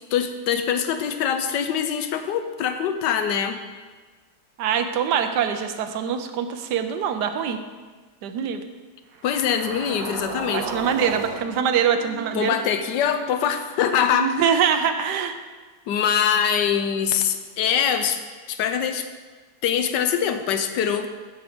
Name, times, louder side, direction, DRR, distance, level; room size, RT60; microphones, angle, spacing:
voice 1, 0.1-3.6 9.2-10.7 12.3-14.6 15.9-18.2 18.5-19.1 19.6-21.1, left 8 dB, 85° left, 8 dB, 1.3 m, -23 dB
voice 2, 4.6-7.6 8.2-8.6 10.5-12.5 14.1-15.4, right 7 dB, 75° right, 8 dB, 1.2 m, -24 dB
sound 1, 9.1-13.5, right 5 dB, 60° right, 1.2 m, -35 dB
7.6 x 7.2 x 5.0 m, 1.4 s
omnidirectional pair, 1.8 m